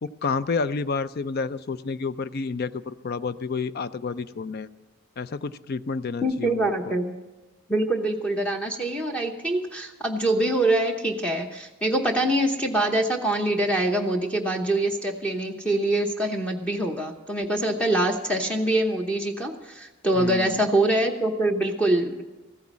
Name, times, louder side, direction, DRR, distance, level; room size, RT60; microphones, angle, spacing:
voice 1, 0.0-4.7 5.2-6.9 20.2-20.6, left 4 dB, 50° left, 15 dB, 0.4 m, -30 dB
voice 2, 6.2-7.1 7.7-22.2, right 1 dB, 5° left, 3 dB, 0.9 m, -24 dB
15.0 x 9.4 x 7.4 m, 1.1 s
head